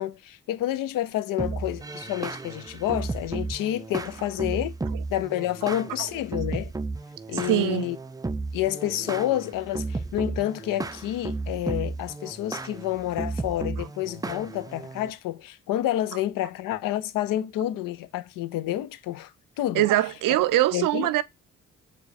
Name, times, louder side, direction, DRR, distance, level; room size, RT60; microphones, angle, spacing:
voice 1, 0.0-4.7 5.1-6.7 7.3-8.0 8.5-19.9 20.7-21.1, left 13 dB, 75° left, 0.5 m, -29 dB
sound 1, 1.4-15.1, right 3 dB, 10° right, 0.4 m, -34 dB
voice 2, 7.5-7.9 19.7-21.2, right 15 dB, 70° right, 0.5 m, -22 dB
4.7 x 2.2 x 4.0 m
supercardioid pair, 50°, 33 cm